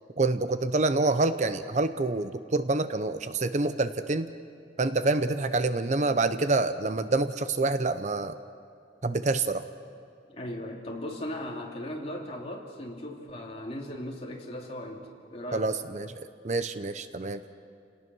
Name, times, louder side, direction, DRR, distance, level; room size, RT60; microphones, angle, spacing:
voice 1, 0.2-4.3 4.8-8.3 9.0-9.7 15.5-17.4, right 3 dB, 40° right, 11 dB, 0.7 m, -27 dB
voice 2, 10.3-15.7, left 1 dB, 35° left, -1 dB, 2.9 m, -38 dB
30.0 x 18.0 x 6.2 m, 2.5 s
head